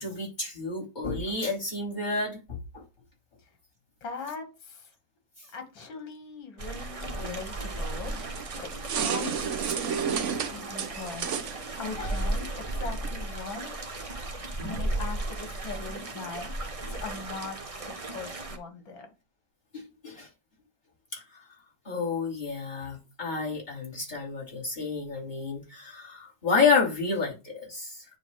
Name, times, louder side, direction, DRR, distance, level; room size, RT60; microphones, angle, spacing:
voice 1, 0.0-2.8 12.0-12.1 14.6-14.8 19.7-20.3 21.1-21.2 21.8-28.0, left 4 dB, 20° left, 2.9 m, -30 dB
voice 2, 4.0-4.9 5.5-11.4 11.8-13.7 14.6-16.5 16.9-17.6 17.9-19.1, left 4 dB, 75° left, 2.3 m, -40 dB
sound 1, 6.6-18.6, right 2 dB, 30° right, 0.6 m, -35 dB
sound 2, 7.9-13.1, right 7 dB, 60° right, 0.8 m, -33 dB
9.9 x 3.5 x 3.0 m
omnidirectional pair, 2.1 m